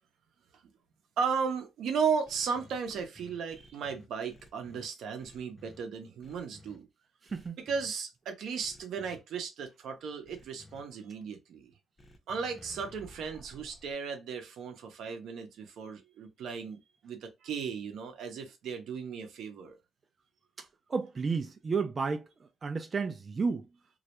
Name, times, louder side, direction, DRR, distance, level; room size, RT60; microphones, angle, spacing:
voice 1, 1.2-6.9 7.6-11.7 12.3-19.8, right 6 dB, 75° right, 0.6 m, -35 dB
sound 1, 2.3-4.9 5.2-5.8 6.2-6.8 7.3-7.9 8.6-9.2 10.3-10.8 12.0-13.9, left 1 dB, 20° left, 0.6 m, -55 dB
voice 2, 7.2-7.6 20.6-23.7, right 4 dB, 35° right, 0.3 m, -32 dB
2.3 x 2.1 x 2.8 m
cardioid pair, 90°, 0 cm